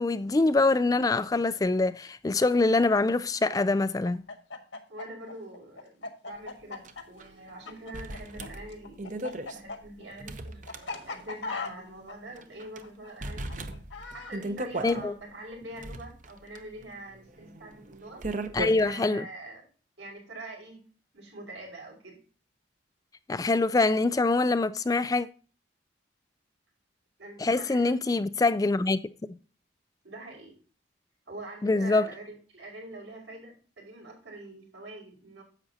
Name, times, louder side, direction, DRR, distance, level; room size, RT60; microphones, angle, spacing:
voice 1, 0.0-4.2 14.8-15.1 18.5-19.2 23.3-25.3 27.4-29.0 31.6-32.1, left 3 dB, 20° left, 0.3 m, -24 dB
Chicken rooster, 4.0-8.5 8.7-14.3, left 4 dB, 80° left, 1.5 m, -39 dB
voice 2, 4.9-13.7 14.1-18.2 18.8-19.7 20.0-20.8 21.1-22.2 27.2-28.2 30.0-30.6 31.3-35.4, right 2 dB, 75° right, 5.2 m, -44 dB
sound 1, 6.8-6.9 7.2-7.3 7.9-11.3 11.7-11.8 12.4-12.8 13.2-15.0 15.6-18.9, right 1 dB, 40° right, 0.8 m, -37 dB
10.0 x 7.9 x 2.8 m
head